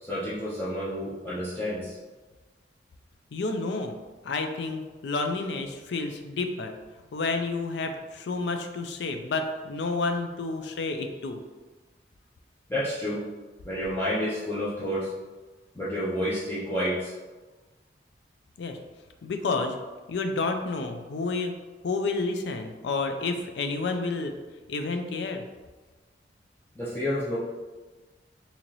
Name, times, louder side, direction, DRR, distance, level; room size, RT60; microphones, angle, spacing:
voice 1, 0.0-2.0 12.7-13.2 13.6-15.1 15.7-17.1 26.8-27.4, equal, 10° left, -10 dB, 0.5 m, -30 dB
voice 2, 3.3-3.9 4.2-6.7 7.1-11.4 18.6-18.8 19.2-19.8 20.1-21.5 21.8-24.3 24.7-25.4, left 3 dB, 65° left, 6 dB, 0.4 m, -30 dB
3.9 x 2.8 x 3.0 m, 1.3 s
head